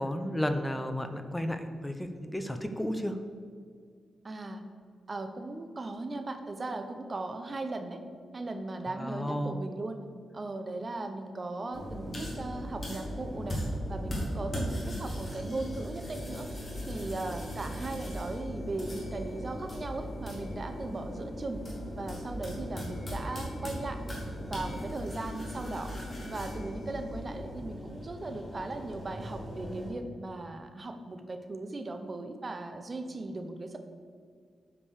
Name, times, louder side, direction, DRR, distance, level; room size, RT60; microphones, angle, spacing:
voice 1, 0.0-3.2 8.9-9.6, equal, 10° left, 7 dB, 0.6 m, -33 dB
voice 2, 4.2-4.6 5.1-8.0 8.3-10.0 10.3-13.6 13.9-16.5 16.9-21.6 22.0-24.0 24.4-25.9 26.3-33.8, right 2 dB, 30° right, 7 dB, 0.8 m, -38 dB
sound 1, 11.7-29.9, equal, 25° left, 2.4 m, -38 dB
8.6 x 5.2 x 6.5 m, 2.1 s
wide cardioid pair, 145°, 0 cm